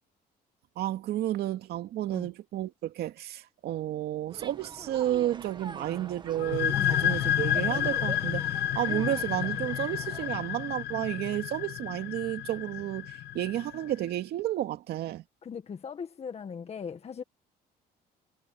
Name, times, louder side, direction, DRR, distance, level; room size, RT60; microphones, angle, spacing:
voice 1, 0.8-15.2, right 13 dB, 70° right, 2.4 m, -32 dB
sound 1, 4.3-10.4, right 5 dB, 25° right, 1.8 m, -44 dB
sound 2, 6.4-13.8, left 12 dB, 80° left, 1.3 m, -30 dB
voice 2, 15.4-17.2, left 6 dB, 35° left, 1.7 m, -39 dB
cardioid pair, 110°, 17 cm